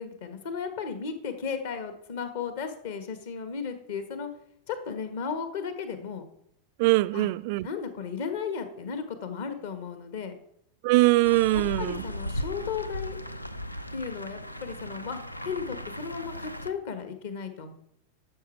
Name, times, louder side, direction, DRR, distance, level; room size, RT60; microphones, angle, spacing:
voice 1, 0.0-4.3 4.7-6.3 7.1-7.3 7.6-10.3 11.5-13.2 13.9-17.7, left 6 dB, 55° left, 1.5 m, -35 dB
voice 2, 6.8-7.7 10.8-12.0, right 20 dB, 50° right, 0.3 m, -22 dB
sound 1, 11.2-16.7, left 1 dB, 85° left, 0.5 m, -37 dB
12.0 x 6.8 x 4.5 m
figure-of-eight pair, 90°, 0 cm